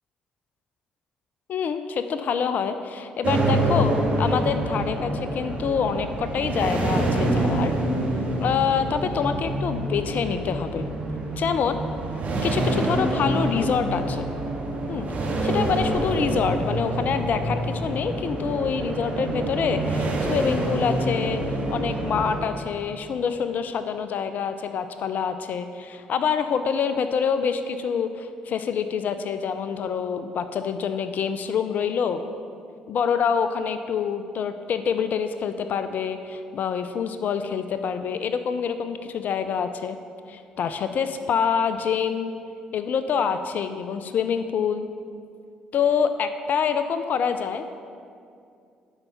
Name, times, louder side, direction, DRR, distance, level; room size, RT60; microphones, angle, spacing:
voice 1, 1.5-7.7 8.4-10.8 11.4-11.8 12.4-14.3 14.9-15.1 15.4-21.4 21.7-32.2 32.9-40.0 40.3-42.3 42.7-44.9 45.7-47.6, left 6 dB, 55° left, 10 dB, 0.5 m, -26 dB
sound 1, 3.2-22.4, right 1 dB, 45° right, 2.1 m, -26 dB
11.5 x 5.5 x 5.6 m, 2.4 s
hypercardioid pair, 50°, 3 cm